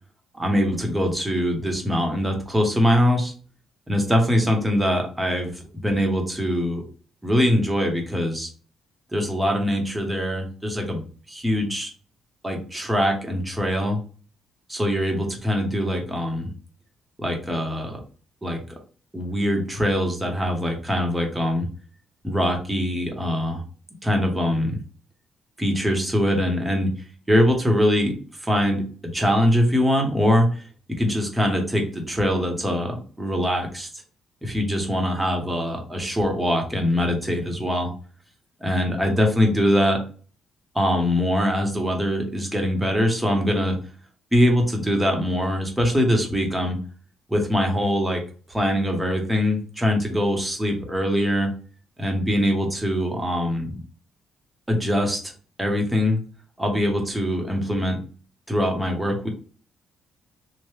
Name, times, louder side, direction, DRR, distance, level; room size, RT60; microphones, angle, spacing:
voice 1, 0.3-3.3 3.9-6.8 7.2-8.5 9.1-11.0 11.3-11.9 12.4-14.0 14.7-16.5 17.2-18.0 18.4-18.8 19.1-21.7 22.2-23.6 24.0-24.8 25.6-26.9 27.3-30.7 31.0-33.9 34.4-37.9 38.6-40.0 40.7-43.8 44.3-46.8 47.3-48.2 48.5-51.5 52.0-53.8 54.7-55.3 55.6-56.2 56.6-58.0 58.5-59.3, equal, 10° right, 2 dB, 0.9 m, -23 dB
3.0 x 2.2 x 3.0 m, 0.40 s
cardioid pair, 90°, 0 cm